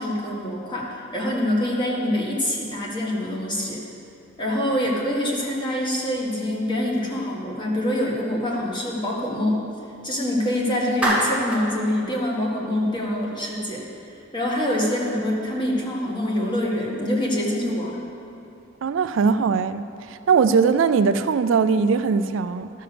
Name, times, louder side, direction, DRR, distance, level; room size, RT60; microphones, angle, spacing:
voice 1, 0.0-3.8 4.4-9.6 10.0-13.8 14.3-18.0, left 1 dB, 25° left, -3 dB, 1.8 m, -25 dB
Clapping, 11.0-11.7, right 1 dB, 5° right, 1.4 m, -22 dB
voice 2, 18.8-22.7, right 5 dB, 65° right, 11 dB, 0.4 m, -20 dB
12.0 x 6.5 x 6.8 m, 2.6 s
head